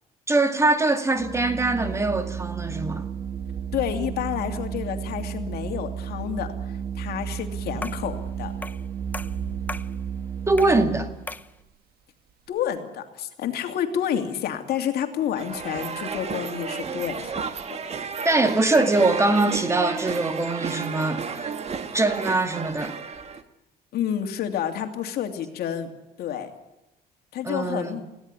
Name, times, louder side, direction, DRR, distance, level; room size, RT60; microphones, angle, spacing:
voice 1, 0.3-3.1 10.5-11.1 18.2-21.5 21.9-23.0 27.4-28.0, right 2 dB, 15° right, 2.1 m, -23 dB
Organ, 1.1-11.4, right 7 dB, 60° right, 2.0 m, -33 dB
voice 2, 3.7-8.5 12.5-17.5 23.9-25.9 26.2-26.5 27.3-28.0, left 9 dB, 70° left, 2.8 m, -29 dB
sound 1, 7.8-8.1 8.6-8.9 9.1-9.9 10.6-10.8 11.3-11.5, left 2 dB, 10° left, 0.7 m, -36 dB
sound 2, 15.4-23.4, right 6 dB, 40° right, 1.8 m, -32 dB
21.0 x 16.5 x 9.9 m
cardioid pair, 110°, 17 cm